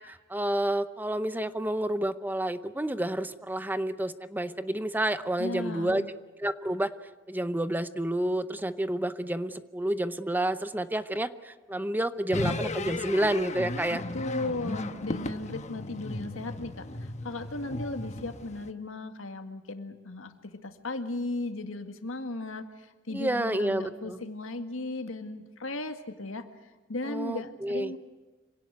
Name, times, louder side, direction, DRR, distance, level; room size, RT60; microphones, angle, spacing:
voice 1, 0.0-6.0 6.4-6.9 7.3-14.0 23.1-24.2 27.0-27.9, right 1 dB, 10° right, 12 dB, 0.7 m, -29 dB
voice 2, 5.4-6.1 13.9-26.5 26.9-28.0, left 2 dB, 90° left, 7 dB, 1.9 m, -36 dB
sound 1, 12.3-18.7, left 2 dB, 35° left, 1.1 m, -35 dB
26.0 x 17.5 x 9.3 m, 1.3 s
head